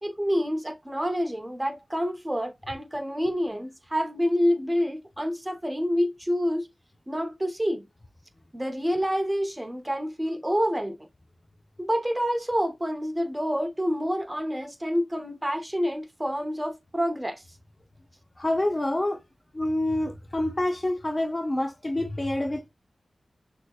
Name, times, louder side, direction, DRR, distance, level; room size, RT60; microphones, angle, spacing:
voice 1, 0.0-6.7 7.1-7.8 8.5-11.0 11.8-17.4, equal, 15° right, 1.0 m, -27 dB
voice 2, 18.4-19.2 19.5-22.7, left 1 dB, 30° left, 0.9 m, -27 dB
6.3 x 3.0 x 2.5 m
cardioid pair, 55°, 0 cm